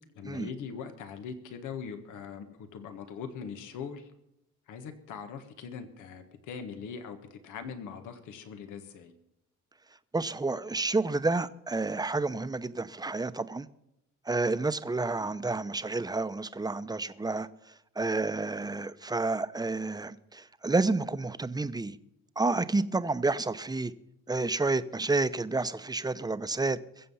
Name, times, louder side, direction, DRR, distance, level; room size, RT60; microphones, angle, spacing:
voice 1, 0.1-4.1 4.7-9.1 15.2-15.3, left 6 dB, 85° left, 1.6 m, -41 dB
voice 2, 10.1-13.7 14.3-17.5 18.0-22.0 22.4-23.9 24.3-26.8, right 3 dB, 15° right, 0.8 m, -30 dB
22.5 x 7.6 x 5.6 m
cardioid pair, 90°, 30 cm